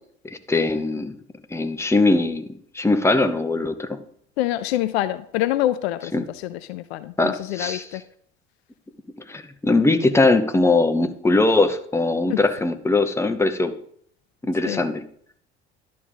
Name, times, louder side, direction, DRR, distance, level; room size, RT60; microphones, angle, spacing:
voice 1, 0.5-1.2 1.5-2.4 2.7-4.0 6.1-6.2 7.2-7.9 9.3-13.7 14.4-15.0, left 2 dB, 10° left, 8 dB, 0.8 m, -20 dB
voice 2, 4.4-8.0 12.3-12.4 14.6-14.8, left 14 dB, 65° left, 14 dB, 0.5 m, -26 dB
11.0 x 3.8 x 7.1 m, 0.63 s
figure-of-eight pair, 60°, 34 cm